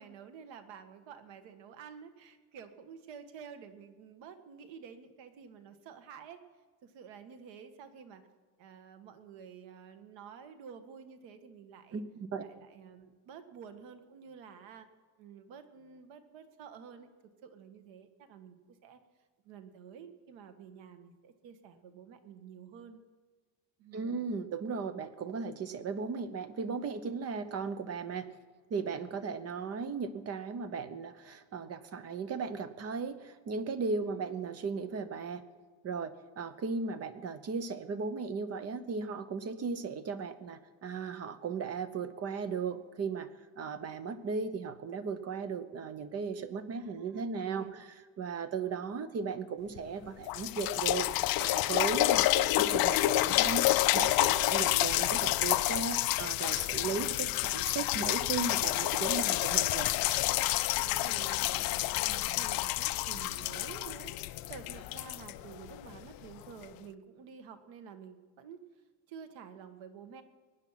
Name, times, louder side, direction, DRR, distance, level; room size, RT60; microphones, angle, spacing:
voice 1, 0.0-6.4 6.8-8.3 8.6-12.0 12.4-14.9 15.2-17.1 17.4-19.0 19.4-23.0 23.8-24.2 34.0-34.3 46.7-47.9 60.7-68.6 69.1-70.2, right 7 dB, 80° right, 8 dB, 1.8 m, -50 dB
voice 2, 11.9-12.4 23.9-28.3 28.7-35.4 35.8-43.3 43.6-47.7 48.2-53.6 53.9-59.9, right 5 dB, 35° right, 12 dB, 0.9 m, -36 dB
sound 1, 49.8-49.9 50.3-66.0 66.6-66.7, left 17 dB, 55° left, 0.5 m, -29 dB
23.0 x 9.7 x 5.8 m, 1.5 s
cardioid pair, 175°, 44 cm